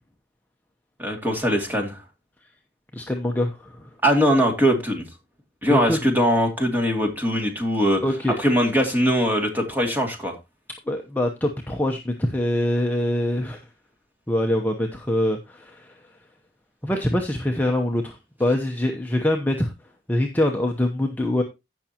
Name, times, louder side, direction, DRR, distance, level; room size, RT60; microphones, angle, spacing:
voice 1, 1.0-2.0 4.0-5.0 5.6-8.0 8.4-10.3, equal, 10° right, 2.4 m, -21 dB
voice 2, 2.9-3.9 5.7-6.0 8.0-8.4 10.9-13.6 14.3-16.0 16.8-19.7 20.1-21.4, left 1 dB, 10° left, 0.8 m, -24 dB
16.0 x 6.1 x 2.9 m
head